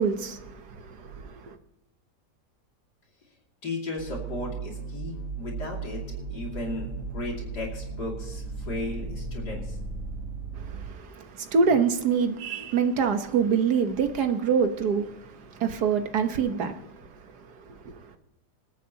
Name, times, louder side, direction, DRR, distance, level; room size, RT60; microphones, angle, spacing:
voice 1, 0.0-1.6 10.5-16.9 17.2-18.1, right 6 dB, 70° right, 1.7 m, -26 dB
voice 2, 3.6-9.8, left 2 dB, 70° left, 3.3 m, -35 dB
sound 1, 4.0-10.8, right 4 dB, 45° right, 4.6 m, -36 dB
26.0 x 9.3 x 2.9 m
omnidirectional pair, 1.8 m